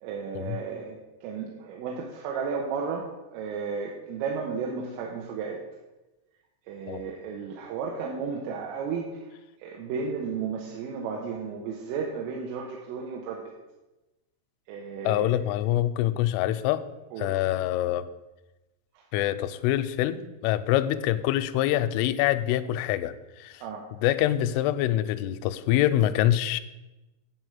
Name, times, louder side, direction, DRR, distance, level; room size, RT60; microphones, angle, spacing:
voice 1, 0.0-5.6 6.7-9.3 9.6-13.5 14.7-15.5 17.1-17.5 19.0-19.1 23.6-23.9, right 5 dB, 80° right, -1 dB, 3.5 m, -34 dB
voice 2, 15.1-16.8 17.2-18.1 19.1-23.6 23.9-26.6, left 13 dB, 85° left, 12 dB, 2.9 m, -25 dB
10.0 x 4.9 x 7.9 m, 1.0 s
omnidirectional pair, 6.0 m